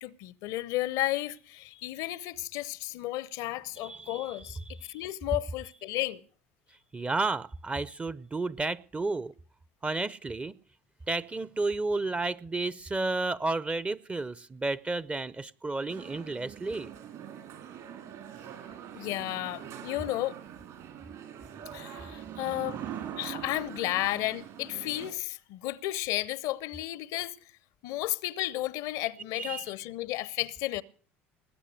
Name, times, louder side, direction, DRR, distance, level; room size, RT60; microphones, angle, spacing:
voice 1, 0.0-4.6 4.9-6.2 18.9-20.4 21.7-22.8 23.1-27.4 27.8-30.8, left 16 dB, 60° left, 0.6 m, -33 dB
voice 2, 3.8-4.3 4.8-4.9 6.9-9.3 9.8-10.6 11.1-16.9 22.0-22.6 29.4-29.6, right 3 dB, 20° right, 0.6 m, -32 dB
sound 1, 15.9-25.1, right 9 dB, 60° right, 4.2 m, -43 dB
20.0 x 8.6 x 6.5 m
hypercardioid pair, 65°, 7 cm